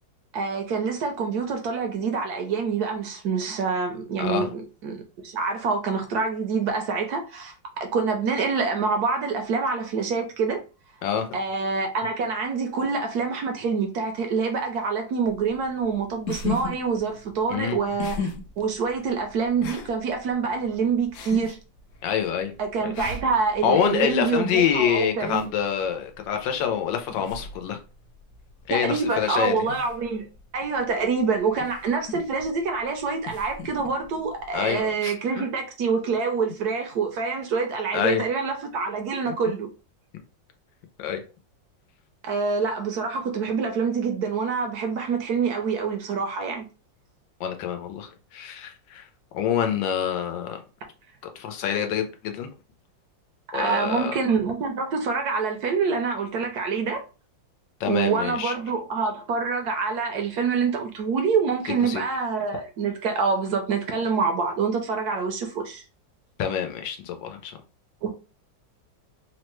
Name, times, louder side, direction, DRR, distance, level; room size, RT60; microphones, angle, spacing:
voice 1, 0.3-10.6 11.3-18.3 18.6-21.6 22.6-25.5 28.7-30.3 30.5-39.7 42.2-46.7 53.5-57.0 57.9-65.8 68.0-68.1, right 5 dB, 70° right, 1.0 m, -26 dB
voice 2, 4.2-4.5 11.0-11.3 17.5-17.8 22.0-22.5 22.8-22.9 23.6-27.8 28.7-29.6 34.5-35.1 37.9-38.2 41.0-41.2 47.4-49.1 49.3-50.6 51.4-52.5 53.5-54.2 57.8-58.5 61.8-62.0 66.4-67.6, left 8 dB, 90° left, 1.3 m, -26 dB
sound 1, 15.2-34.9, left 4 dB, 75° left, 0.9 m, -39 dB
3.5 x 2.1 x 3.1 m
omnidirectional pair, 2.0 m